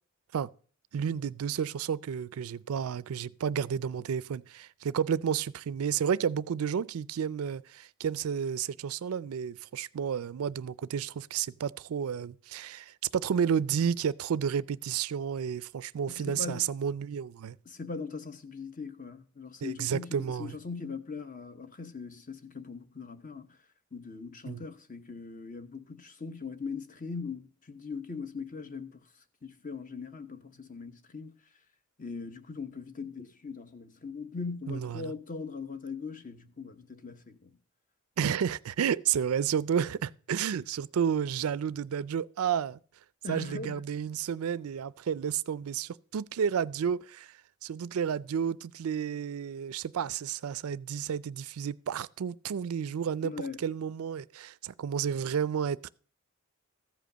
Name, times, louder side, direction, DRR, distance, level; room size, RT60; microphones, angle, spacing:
voice 1, 0.9-17.6 19.6-20.6 24.5-24.6 34.7-35.1 38.2-42.8 43.3-47.3 47.6-53.3 53.6-55.9, right 7 dB, 90° right, 0.4 m, -31 dB
voice 2, 16.1-16.6 17.6-23.6 23.9-29.0 29.4-31.3 32.0-37.6 43.2-43.9 53.2-53.6, left 4 dB, 40° left, 0.9 m, -40 dB
14.0 x 5.1 x 6.6 m
head